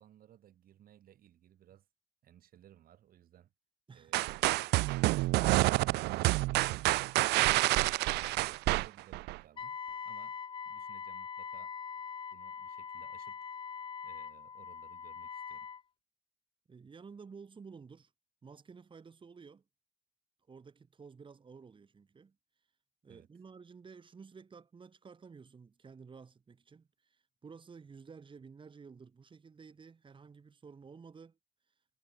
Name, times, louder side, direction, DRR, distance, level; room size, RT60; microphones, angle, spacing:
voice 1, 0.0-1.9 2.2-3.5 3.9-4.5 5.4-7.2 8.2-9.8 10.0-10.4 10.7-11.7 12.3-13.5 14.0-15.7 23.1-23.3, right 11 dB, 60° right, 4.2 m, -60 dB
sound 1, 4.1-9.4, right 20 dB, 80° right, 0.4 m, -28 dB
Wind instrument woodwind instrument, 9.6-15.8, left 6 dB, 30° left, 0.6 m, -43 dB
voice 2, 16.7-18.1 18.4-19.6 20.5-22.4 23.0-31.4, right 5 dB, 30° right, 4.1 m, -53 dB
cardioid pair, 110°, 17 cm